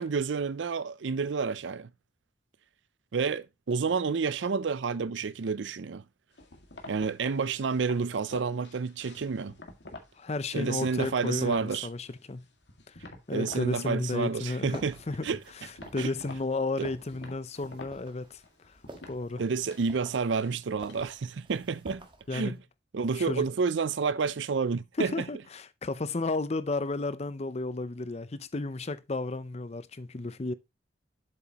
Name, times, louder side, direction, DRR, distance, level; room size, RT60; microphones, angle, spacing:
voice 1, 0.0-1.9 3.1-6.0 6.9-9.5 10.5-11.9 13.3-15.0 15.2-15.4 16.0-16.1 16.8-16.9 19.4-22.1 22.3-22.6 22.9-25.1, right 5 dB, 80° right, 0.5 m, -29 dB
sound 1, 6.4-10.2 10.5-11.7 12.1-13.7 14.0-14.6 14.9-21.1, left 2 dB, 70° left, 2.0 m, -49 dB
voice 2, 10.2-12.4 12.9-13.0 13.3-15.3 15.5-18.8 19.1-19.4 22.3-22.6 23.1-23.4 25.0-30.5, left 2 dB, 35° left, 0.6 m, -33 dB
sound 2, 14.7-22.6, right 1 dB, 25° right, 1.4 m, -51 dB
7.7 x 7.5 x 2.9 m
head